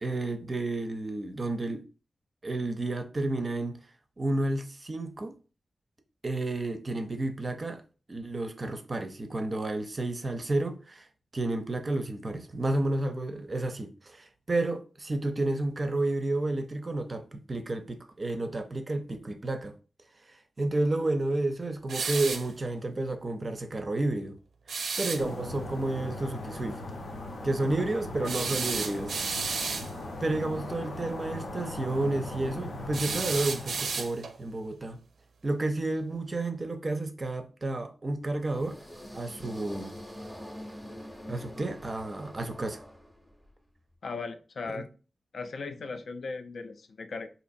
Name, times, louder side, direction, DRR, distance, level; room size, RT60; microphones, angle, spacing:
voice 1, 0.0-1.8 2.4-3.8 4.2-5.3 6.2-7.8 8.1-11.1 11.3-19.7 20.6-24.4 25.0-26.8 27.4-29.2 29.5-29.6 30.2-35.0 35.4-38.8 39.1-40.0 41.3-42.8 44.7-44.9, right 2 dB, 30° right, 0.5 m, -31 dB
sound 1, 21.9-22.5 24.7-25.2 28.2-29.9 32.9-34.4, right 5 dB, 85° right, 0.5 m, -32 dB
sound 2, 25.2-34.1, left 1 dB, 85° left, 0.8 m, -39 dB
sound 3, 38.4-43.5, equal, 5° left, 0.7 m, -44 dB
voice 2, 44.0-44.9 45.3-47.3, left 4 dB, 65° left, 0.4 m, -38 dB
4.0 x 2.8 x 2.6 m
wide cardioid pair, 135°, 0 cm